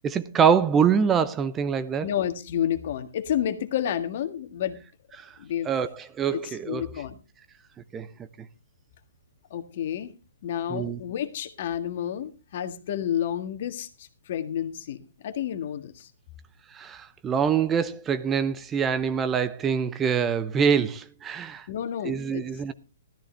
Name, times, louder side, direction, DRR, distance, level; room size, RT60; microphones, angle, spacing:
voice 1, 0.0-2.1 5.2-5.3 5.7-6.8 7.9-8.1 10.7-11.0 16.7-21.7 22.0-22.7, right 7 dB, 20° right, 0.7 m, -25 dB
voice 2, 2.0-4.8 5.4-5.7 6.3-7.2 9.5-10.1 10.4-16.1 21.7-22.4, left 10 dB, 55° left, 1.6 m, -30 dB
14.0 x 13.5 x 3.3 m
hypercardioid pair, 125°, 0 cm